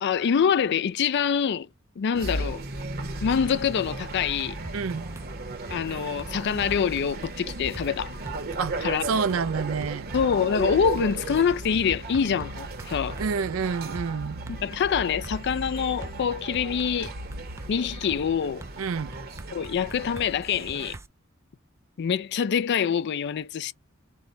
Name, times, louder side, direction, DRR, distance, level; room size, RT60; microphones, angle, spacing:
voice 1, 0.0-1.7 2.0-2.6 3.2-4.6 5.7-8.2 8.8-9.1 10.1-13.2 14.5-17.1 17.7-18.6 19.5-20.9 22.0-23.7, left 7 dB, 55° left, 0.4 m, -25 dB
sound 1, 2.1-21.0, right 2 dB, 50° right, 0.9 m, -36 dB
sound 2, 4.6-5.3 5.7-5.8 6.2-7.9 8.3-9.4 9.8-9.9 10.3-13.6 14.0-14.1 14.5-16.1 16.5-17.7 18.1-18.2 18.6-21.1, right 2 dB, 15° right, 0.3 m, -44 dB
voice 2, 4.7-5.1 8.6-10.1 13.2-14.4 18.8-19.1, right 5 dB, 80° right, 0.5 m, -28 dB
5.3 x 2.1 x 4.0 m
head